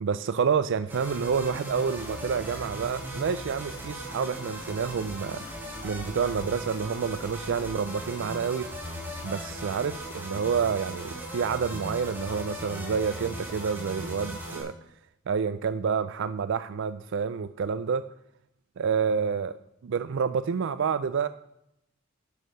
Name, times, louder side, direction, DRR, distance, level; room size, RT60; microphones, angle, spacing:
voice 1, 0.0-5.4 5.8-8.7 9.2-14.7 15.3-18.0 18.8-19.6 19.8-21.3, right 6 dB, 65° right, 14 dB, 0.4 m, -28 dB
sound 1, 0.9-14.6, right 1 dB, 10° right, 3.9 m, -38 dB
12.5 x 6.4 x 5.4 m, 0.80 s
head